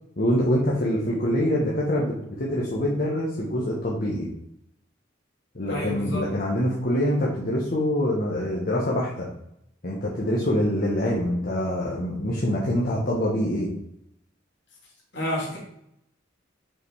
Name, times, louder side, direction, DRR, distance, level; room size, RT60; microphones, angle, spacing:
voice 1, 0.2-4.3 5.5-9.3 9.8-13.7, equal, 50° left, -4 dB, 1.3 m, -25 dB
voice 2, 5.7-6.3 15.1-15.6, left 1 dB, 65° left, -3 dB, 2.8 m, -29 dB
5.8 x 5.0 x 4.8 m, 0.76 s
head